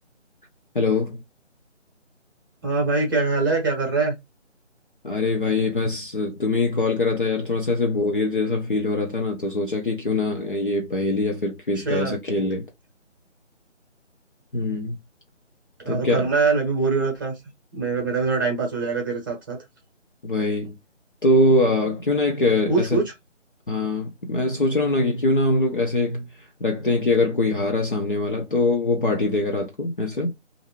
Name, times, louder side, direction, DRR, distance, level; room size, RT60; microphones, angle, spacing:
voice 1, 0.7-1.2 5.0-12.7 14.5-15.0 15.9-16.3 20.2-20.8 21.2-23.0 23.7-26.2 26.6-30.3, left 2 dB, 45° left, 0.7 m, -23 dB
voice 2, 2.6-4.1 11.7-12.2 15.8-17.3 17.7-19.6 22.7-23.0, right 4 dB, 15° right, 1.0 m, -23 dB
3.2 x 2.7 x 2.9 m
figure-of-eight pair, 155°, 37 cm